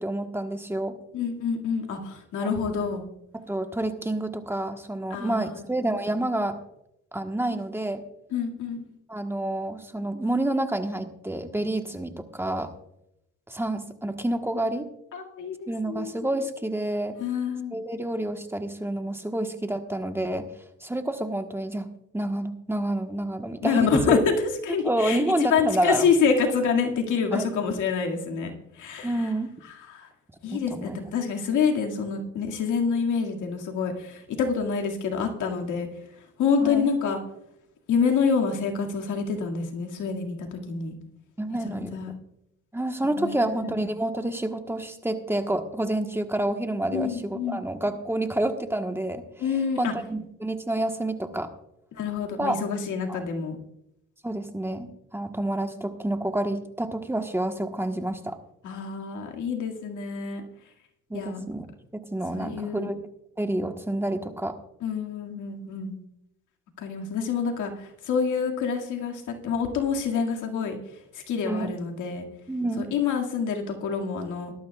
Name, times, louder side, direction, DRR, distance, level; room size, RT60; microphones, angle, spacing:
voice 1, 0.0-0.9 2.4-2.5 3.5-6.6 7.1-8.0 9.1-12.7 13.5-14.9 15.7-17.2 17.7-20.5 20.8-21.9 22.1-24.2 24.8-26.1 27.3-27.5 29.0-29.5 30.5-31.0 36.6-36.9 41.4-42.0 42.7-49.2 49.8-51.5 52.4-52.6 53.1-53.2 54.2-58.4 61.1-61.7 61.9-63.1 63.4-64.5 71.5-71.7 72.5-72.9, right 1 dB, 10° right, 6 dB, 1.3 m, -28 dB
voice 2, 1.1-3.1 5.1-5.6 8.3-8.9 15.1-16.1 17.2-17.8 23.6-24.3 24.6-28.5 28.8-29.1 29.9-30.1 30.4-35.9 36.4-37.2 37.9-41.0 41.6-42.1 43.2-43.8 46.9-47.6 49.4-49.9 52.0-53.6 58.6-60.4 61.1-61.4 62.3-62.9 64.8-66.0 66.8-67.7 68.0-70.8 71.1-72.2 72.8-74.5, left 6 dB, 80° left, 2 dB, 2.2 m, -27 dB
18.0 x 12.5 x 2.4 m, 0.81 s
cardioid pair, 90°, 30 cm